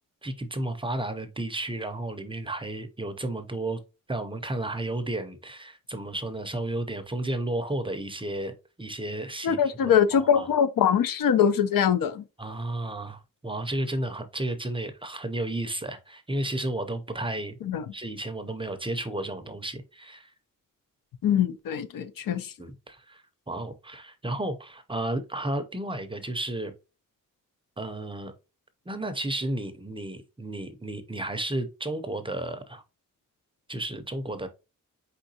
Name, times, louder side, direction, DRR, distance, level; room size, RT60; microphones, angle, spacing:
voice 1, 0.2-3.8 4.1-10.5 12.4-17.6 17.9-20.3 22.6-26.7 27.8-28.3 28.9-32.8 33.7-34.5, right 1 dB, 15° right, 0.4 m, -33 dB
voice 2, 9.4-12.2 17.6-17.8 21.2-22.5, left 8 dB, 85° left, 0.5 m, -23 dB
4.5 x 3.7 x 2.7 m
wide cardioid pair, 175°, 33 cm